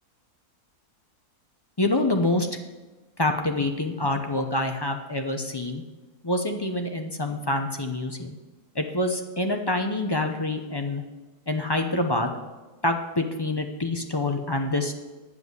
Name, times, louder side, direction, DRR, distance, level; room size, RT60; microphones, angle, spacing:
voice 1, 1.8-2.5 3.2-5.8 6.2-8.4 8.7-11.0 11.5-12.3 12.8-14.9, left 2 dB, 30° left, 4 dB, 0.5 m, -26 dB
9.8 x 7.7 x 8.1 m, 1.2 s
omnidirectional pair, 1.6 m